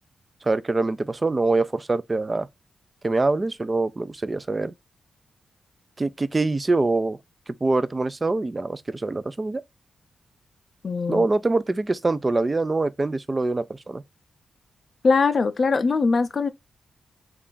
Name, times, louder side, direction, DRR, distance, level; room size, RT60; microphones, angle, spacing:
voice 1, 0.4-2.5 3.0-4.7 6.0-7.2 7.6-9.6 11.1-14.0, right 3 dB, 25° right, 0.3 m, -24 dB
voice 2, 10.8-11.3 15.0-16.5, left 4 dB, 45° left, 0.4 m, -21 dB
3.3 x 2.4 x 3.7 m
cardioid pair, 75°, 0 cm